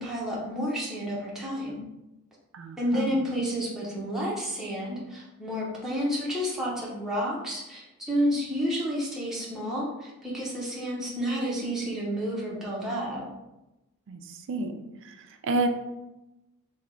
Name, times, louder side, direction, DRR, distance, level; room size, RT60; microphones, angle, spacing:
voice 1, 0.0-1.9 2.8-13.3, equal, ahead, -6 dB, 0.7 m, -30 dB
voice 2, 2.5-3.2 14.1-14.7 15.0-15.7, right 2 dB, 60° right, 6 dB, 0.4 m, -30 dB
3.3 x 2.1 x 3.7 m, 0.96 s
head